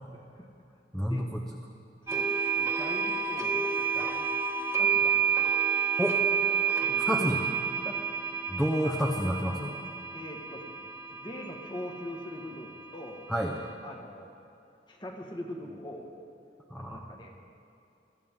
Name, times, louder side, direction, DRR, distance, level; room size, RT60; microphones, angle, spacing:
voice 1, 0.1-0.5 1.1-1.3 2.0-4.3 4.8-5.5 6.8-7.0 7.8-8.1 8.8-9.0 10.1-13.3 13.8-14.3 14.9-16.1 16.7-17.3, left 1 dB, 25° left, 1 dB, 1.6 m, -42 dB
voice 2, 0.9-1.4 6.0-6.2 7.0-7.5 8.5-9.7 13.3-13.5 16.7-17.1, equal, 5° left, 0 dB, 0.8 m, -29 dB
sound 1, 2.1-13.7, right 6 dB, 15° right, 1.4 m, -30 dB
24.0 x 14.0 x 3.7 m, 2.6 s
head